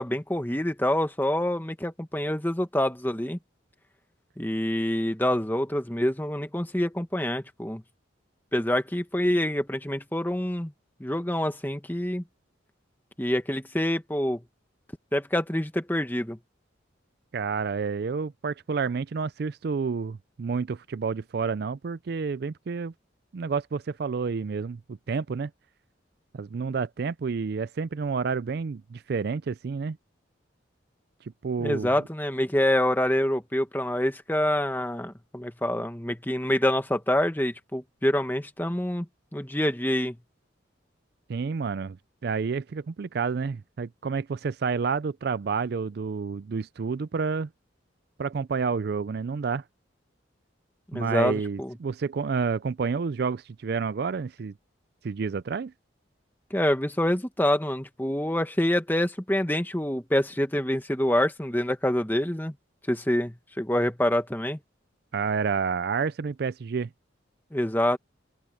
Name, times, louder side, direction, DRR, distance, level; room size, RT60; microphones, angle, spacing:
voice 1, 0.0-3.4 4.4-7.8 8.5-10.7 11.0-12.2 13.2-14.4 15.1-16.4 31.6-39.1 39.3-40.2 50.9-51.7 56.5-62.5 62.9-64.6 67.5-68.0, left 1 dB, 10° left, 1.3 m, -26 dB
voice 2, 17.3-22.9 23.3-25.5 26.3-30.0 31.2-31.9 41.3-42.0 42.2-47.5 48.2-49.6 50.9-54.5 55.0-55.7 65.1-66.9, right 5 dB, 55° right, 0.4 m, -29 dB
open air
head